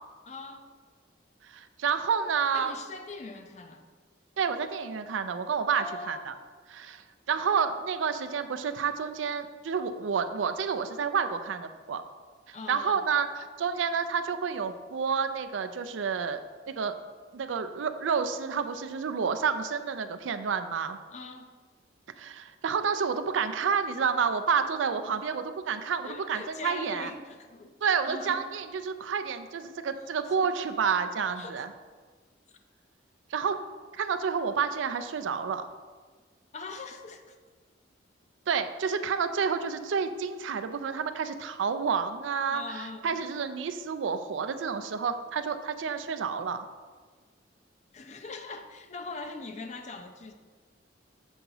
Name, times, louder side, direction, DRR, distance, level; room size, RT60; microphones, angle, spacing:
voice 1, 0.2-0.7 2.5-3.8 5.7-6.4 12.5-13.1 21.1-21.5 26.0-27.8 28.1-28.5 30.2-30.5 31.4-31.6 36.5-37.4 38.8-39.0 42.5-43.4 47.9-50.3, left 3 dB, 35° left, 6 dB, 0.4 m, -41 dB
voice 2, 1.4-2.7 4.4-6.3 6.7-12.0 12.5-13.3 13.6-16.4 16.7-17.0 17.3-21.0 22.2-27.1 27.8-31.7 33.3-33.6 33.9-35.7 38.5-46.7, right 6 dB, 85° right, 9 dB, 0.4 m, -29 dB
7.0 x 2.9 x 5.4 m, 1.5 s
head